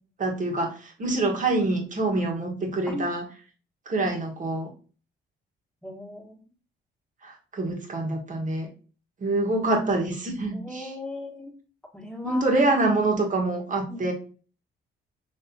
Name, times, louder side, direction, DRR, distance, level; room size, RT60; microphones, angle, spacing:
voice 1, 0.2-3.2 3.8-4.7 7.2-8.7 9.2-10.9 12.2-14.1, right 2 dB, 40° right, 1 dB, 1.5 m, -26 dB
voice 2, 5.8-6.4 10.5-11.5 11.9-12.6 13.9-14.1, left 1 dB, 5° left, 0 dB, 1.5 m, -37 dB
5.5 x 3.4 x 2.8 m, 0.38 s
cardioid pair, 90°, 20 cm